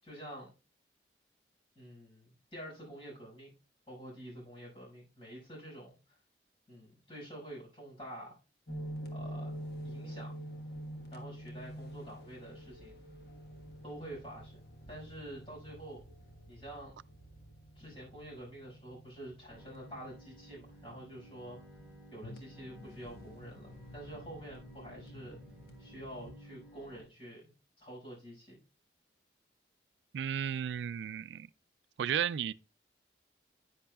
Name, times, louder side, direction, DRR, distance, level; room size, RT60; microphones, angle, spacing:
voice 1, 0.0-0.5 1.8-3.5 3.9-6.2 6.7-8.4 9.1-9.6 9.8-10.4 11.1-13.1 13.8-16.0 16.5-17.0 17.8-21.6 22.1-25.4 25.8-27.5 27.8-28.6, right 1 dB, 30° left, 5.6 m, -48 dB
sound 1, 8.7-26.3, equal, 60° left, 1.3 m, -47 dB
Bowed string instrument, 19.5-27.0, equal, 5° right, 3.4 m, -55 dB
voice 2, 30.1-31.5 32.0-32.5, right 8 dB, 80° right, 0.3 m, -33 dB
10.0 x 9.4 x 2.3 m
head